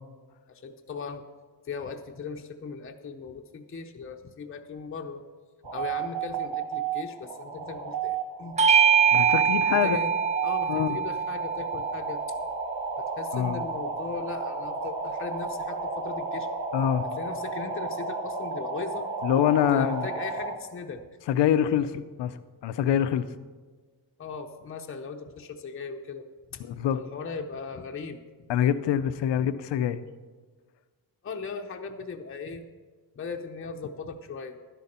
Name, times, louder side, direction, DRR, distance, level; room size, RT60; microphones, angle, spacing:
voice 1, 0.5-1.2 1.6-5.2 5.7-8.6 9.7-10.1 10.4-12.2 13.0-16.5 17.0-19.1 19.7-21.1 24.2-26.6 26.9-28.2 31.2-32.7 33.2-34.6, left 5 dB, 30° left, 4 dB, 0.7 m, -38 dB
sound 1, 5.6-20.5, right 5 dB, 85° right, 1.3 m, -33 dB
Bell / Doorbell, 8.6-13.4, right 7 dB, 20° right, 0.4 m, -24 dB
voice 2, 9.1-10.0 10.7-11.0 13.3-13.6 16.7-17.1 19.2-20.1 21.3-23.2 26.6-27.0 28.5-30.0, left 10 dB, 85° left, 12 dB, 0.7 m, -25 dB
12.0 x 11.0 x 4.3 m, 1.4 s
wide cardioid pair, 130°, 42 cm